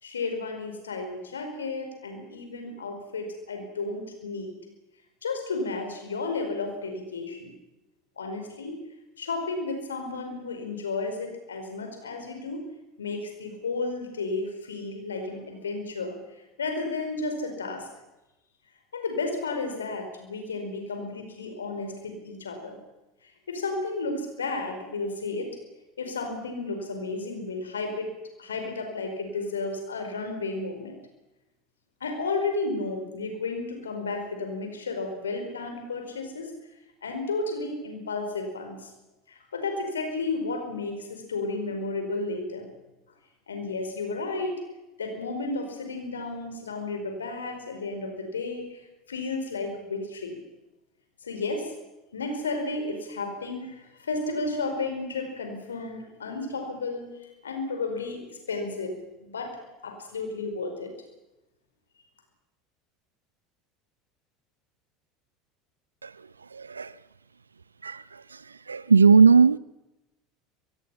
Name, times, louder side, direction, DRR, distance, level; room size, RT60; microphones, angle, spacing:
voice 1, 0.0-4.5 5.2-7.5 8.2-8.7 9.2-12.6 13.0-16.2 16.6-17.9 18.9-22.8 23.5-25.5 26.0-28.1 28.4-31.0 32.0-36.5 37.0-38.9 39.3-42.6 43.5-44.5 45.0-48.8 49.1-50.4 51.2-51.7 52.1-57.1 57.4-58.9 59.2-59.6 59.8-60.9, left 3 dB, 75° left, 5 dB, 5.1 m, -32 dB
voice 2, 66.5-66.9 67.8-68.0 68.7-69.6, right 5 dB, 80° right, 21 dB, 0.6 m, -17 dB
24.0 x 22.0 x 5.8 m, 0.99 s
figure-of-eight pair, 70°, 0 cm